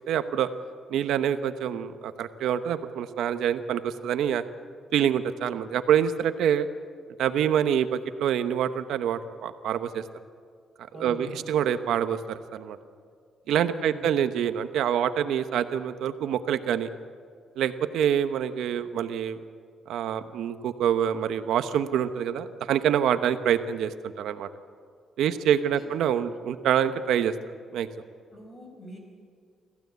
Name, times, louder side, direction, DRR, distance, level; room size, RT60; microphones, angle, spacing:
voice 1, 0.1-0.5 0.9-4.4 4.9-6.7 7.2-10.0 11.0-12.8 13.5-16.9 17.6-19.4 19.9-24.5 25.2-27.3 27.7-27.9, right 9 dB, 85° right, 10 dB, 0.9 m, -26 dB
voice 2, 10.9-11.5 13.7-14.1 23.1-23.2 25.3-25.4 25.7-25.9 28.3-29.0, left 1 dB, 25° left, 2 dB, 4.7 m, -43 dB
25.5 x 15.5 x 8.2 m, 2.2 s
cardioid pair, 160°, 0 cm